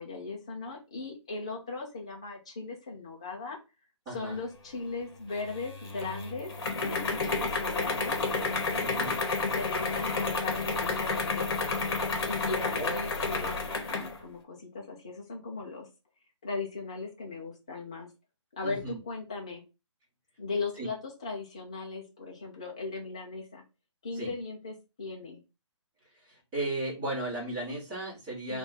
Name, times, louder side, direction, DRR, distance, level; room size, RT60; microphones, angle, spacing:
voice 1, 0.0-3.6 4.1-6.5 6.8-9.1 9.5-11.5 12.2-15.9 16.4-18.1 18.6-19.6 20.4-23.6 24.0-25.4 28.5-28.6, left 3 dB, 10° left, -1 dB, 0.4 m, -38 dB
voice 2, 4.0-4.4 8.8-9.1 12.8-13.4 18.6-19.0 20.8-20.9 24.1-24.3 26.3-28.6, right 1 dB, 10° right, -8 dB, 1.3 m, -35 dB
sound 1, 5.4-14.2, left 3 dB, 50° left, 1.0 m, -31 dB
3.7 x 2.4 x 4.0 m, 0.28 s
hypercardioid pair, 175°, 16 cm